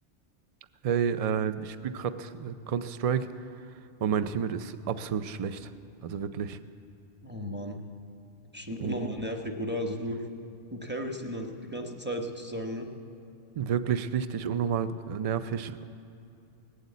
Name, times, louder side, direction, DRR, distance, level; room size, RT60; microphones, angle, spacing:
voice 1, 0.8-3.3 4.0-5.7 6.0-6.6 8.8-9.2 13.6-15.8, right 7 dB, 60° right, 12 dB, 0.3 m, -30 dB
voice 2, 7.2-7.8 8.5-10.2 10.7-12.9, equal, 10° right, 2 dB, 1.0 m, -34 dB
18.5 x 8.1 x 8.3 m, 2.7 s
omnidirectional pair, 1.2 m